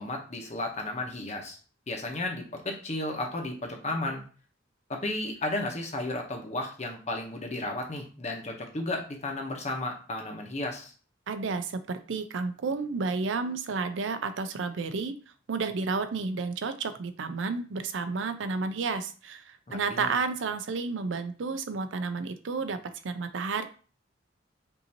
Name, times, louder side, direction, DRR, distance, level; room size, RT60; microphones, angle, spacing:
voice 1, 0.0-1.6 1.9-4.2 4.9-10.9 19.7-20.1, left 2 dB, 40° left, 2 dB, 1.0 m, -33 dB
voice 2, 11.3-15.2 15.5-23.6, right 4 dB, 90° right, 9 dB, 0.5 m, -31 dB
5.4 x 2.7 x 2.8 m, 0.39 s
head